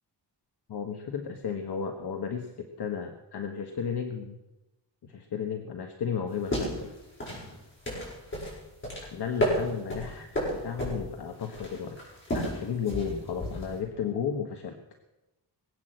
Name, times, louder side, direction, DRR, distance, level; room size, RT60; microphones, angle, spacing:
voice 1, 0.7-4.4 5.0-6.9 9.1-12.0 12.3-14.7, left 7 dB, 65° left, 5 dB, 1.4 m, -34 dB
sound 1, 6.3-13.8, equal, 30° left, 7.2 m, -33 dB
20.5 x 8.4 x 7.7 m, 0.99 s
wide cardioid pair, 160°, 42 cm